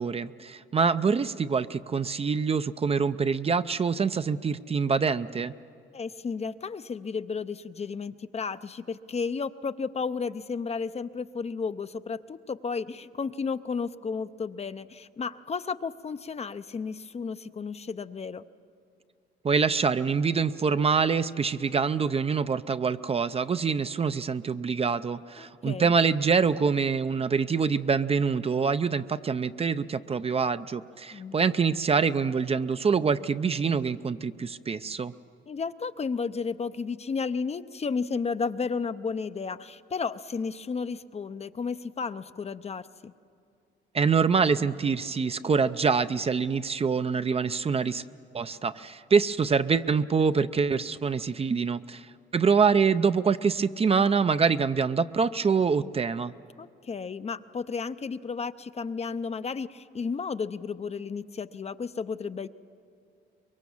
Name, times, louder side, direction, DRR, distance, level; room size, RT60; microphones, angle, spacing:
voice 1, 0.0-5.5 19.4-35.1 43.9-48.0 48.3-52.1 52.3-56.3, right 5 dB, 30° right, 12 dB, 0.5 m, -25 dB
voice 2, 5.9-18.4 25.4-25.9 31.1-31.4 35.5-43.1 53.7-53.8 56.6-62.5, left 5 dB, 30° left, 12 dB, 0.6 m, -33 dB
24.0 x 22.5 x 7.2 m, 2.4 s
cardioid pair, 90°, 20 cm